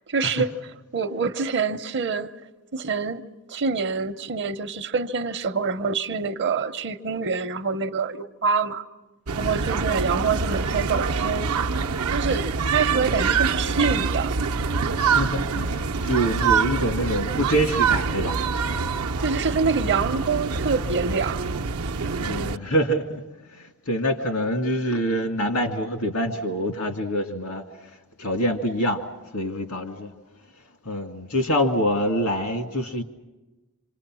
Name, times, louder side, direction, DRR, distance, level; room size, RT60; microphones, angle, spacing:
voice 1, 0.1-0.5 0.9-2.3 2.7-3.2 3.5-8.9 9.4-11.5 12.0-14.3 19.2-21.5 22.0-22.5, right 5 dB, 55° right, 0.7 m, -26 dB
sound 1, 9.3-22.6, right 5 dB, 85° right, 0.7 m, -25 dB
voice 2, 15.0-18.4 22.2-23.2 23.5-27.6 28.2-29.0 29.3-30.1 30.9-33.0, equal, 85° left, 2.1 m, -25 dB
27.0 x 26.0 x 6.2 m
head